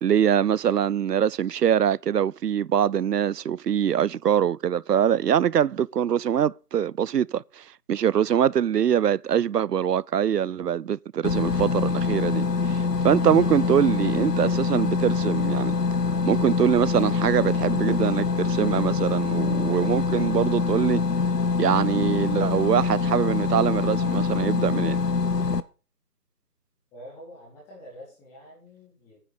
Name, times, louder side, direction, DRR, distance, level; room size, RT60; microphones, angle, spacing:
voice 1, 0.0-15.7 16.2-21.0 21.6-25.0, right 9 dB, 85° right, 0.6 m, -23 dB
sound 1, 11.2-25.6, left 4 dB, 85° left, 1.2 m, -24 dB
sound 2, 12.1-24.6, left 2 dB, 40° left, 3.7 m, -49 dB
voice 2, 26.9-29.2, equal, 5° left, 1.8 m, -46 dB
10.0 x 9.0 x 5.0 m
figure-of-eight pair, 160°, 47 cm